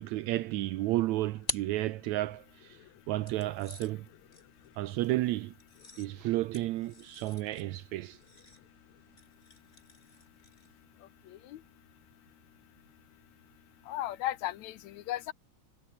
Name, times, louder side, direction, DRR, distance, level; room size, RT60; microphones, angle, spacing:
voice 1, 0.0-2.8 3.1-4.1 4.8-5.5 6.0-8.2, right 16 dB, 80° right, 2.0 m, -32 dB
sound 1, 0.8-2.6 3.2-10.8, left 2 dB, 20° left, 4.9 m, -46 dB
voice 2, 11.3-11.6 13.9-15.3, left 13 dB, 75° left, 2.3 m, -36 dB
omnidirectional pair, 3.3 m